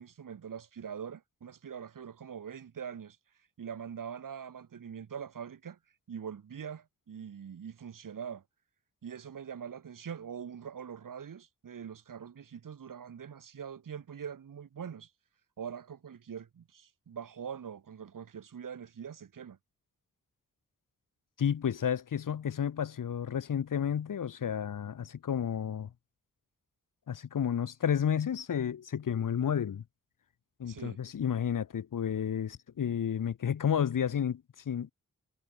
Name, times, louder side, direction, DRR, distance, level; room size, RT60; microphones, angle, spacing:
voice 1, 0.0-3.2 3.6-5.8 6.1-8.4 9.0-15.1 15.6-19.6 30.7-31.0, right 7 dB, 80° right, 4.4 m, -43 dB
voice 2, 21.4-25.9 27.1-29.8 30.6-34.9, left 8 dB, 80° left, 1.7 m, -31 dB
cardioid pair, 50°, 32 cm